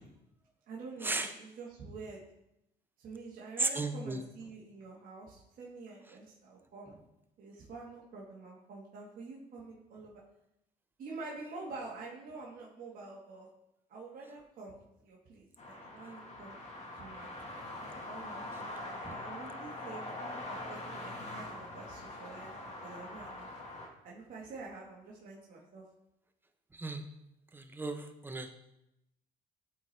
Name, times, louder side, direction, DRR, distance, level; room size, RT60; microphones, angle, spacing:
voice 1, 0.7-2.2 3.0-6.9 7.4-10.2 11.0-13.5 13.9-16.6 16.9-17.6 18.0-20.0 20.5-23.6 24.0-25.8, right 3 dB, 55° right, -4 dB, 1.5 m, -47 dB
voice 2, 3.6-4.2 19.0-19.1 26.7-27.0 27.5-28.5, right 2 dB, 10° right, 7 dB, 0.7 m, -35 dB
sound 1, 15.6-23.9, left 1 dB, 40° left, 1.4 m, -43 dB
11.5 x 4.1 x 3.3 m, 0.85 s
cardioid pair, 110°, 17 cm